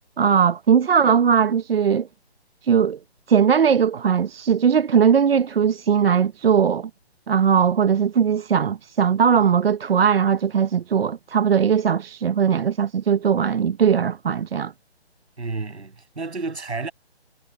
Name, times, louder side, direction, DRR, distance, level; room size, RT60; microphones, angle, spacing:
voice 1, 0.2-2.1 2.6-3.0 3.3-6.9 7.3-14.7, right 7 dB, 65° right, 0.9 m, -19 dB
voice 2, 15.4-16.9, right 3 dB, 85° right, 7.9 m, -31 dB
figure-of-eight pair, 150°, 32 cm